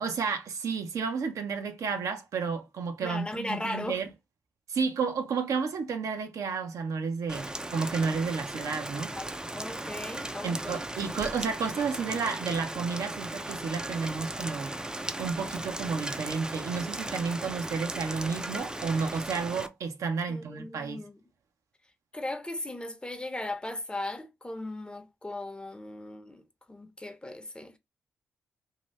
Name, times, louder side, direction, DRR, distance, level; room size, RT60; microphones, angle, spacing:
voice 1, 0.0-4.1 4.7-9.1 10.4-14.7 15.2-21.0, right 5 dB, 70° right, 0.7 m, -31 dB
voice 2, 3.0-4.0 9.2-9.3 9.5-10.8 20.3-21.2 22.1-26.4 26.7-27.8, left 2 dB, 15° left, 0.8 m, -37 dB
Rain, 7.3-19.7, right 1 dB, 15° right, 0.5 m, -37 dB
2.8 x 2.6 x 3.2 m
supercardioid pair, 45°, 6 cm